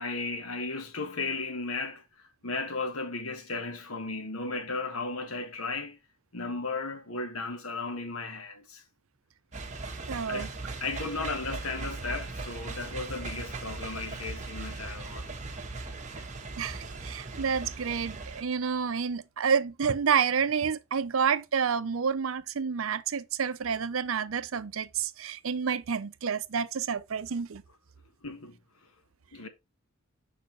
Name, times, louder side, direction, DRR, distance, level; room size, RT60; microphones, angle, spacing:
voice 1, 0.0-6.0 6.3-8.8 10.3-10.5 10.8-15.3 28.2-28.6 29.3-29.5, left 3 dB, 90° left, 1.4 m, -35 dB
sound 1, 9.5-18.4, right 3 dB, 35° right, 1.3 m, -39 dB
voice 2, 10.1-10.5 16.6-27.6, right 6 dB, 70° right, 0.6 m, -29 dB
6.6 x 5.6 x 3.2 m
head